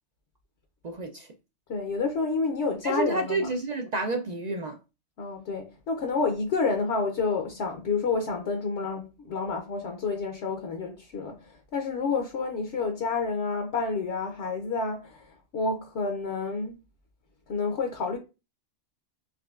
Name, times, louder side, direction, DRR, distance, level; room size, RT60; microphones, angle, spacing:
voice 1, 0.8-1.3 2.8-4.8, right 2 dB, 65° right, 0.4 m, -30 dB
voice 2, 1.7-3.5 5.2-16.8 17.5-18.2, left 4 dB, 65° left, 1.0 m, -29 dB
5.0 x 3.1 x 2.3 m
omnidirectional pair, 1.2 m